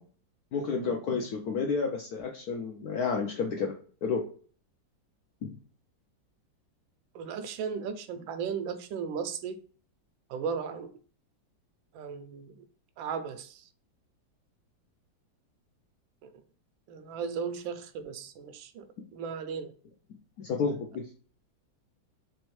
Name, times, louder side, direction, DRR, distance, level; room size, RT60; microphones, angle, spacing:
voice 1, 0.5-3.7 4.0-4.2 5.4-5.5 20.4-21.0, left 5 dB, 75° left, 0.9 m, -30 dB
voice 2, 7.1-9.6 10.3-10.9 11.9-12.6 13.0-13.7 16.2-16.3 16.9-18.9 19.1-19.7, right 6 dB, 80° right, 1.3 m, -36 dB
3.5 x 3.1 x 3.1 m
omnidirectional pair, 2.1 m